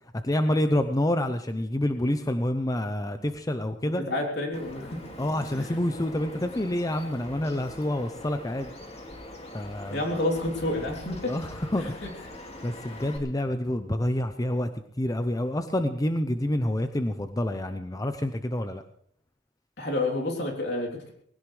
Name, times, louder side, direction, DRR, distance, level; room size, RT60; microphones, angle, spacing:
voice 1, 0.2-4.0 5.2-8.7 9.5-10.0 11.3-12.0 12.6-14.7 15.0-18.8, left 1 dB, 20° left, 8 dB, 0.7 m, -28 dB
voice 2, 4.1-5.0 5.5-5.7 9.9-11.3 11.8-11.9 19.8-21.1, left 2 dB, 60° left, 1 dB, 3.4 m, -29 dB
Bird vocalization bird call bird song, 4.5-13.2, left 1 dB, 35° left, 2.3 m, -42 dB
20.0 x 17.0 x 3.3 m, 0.63 s
head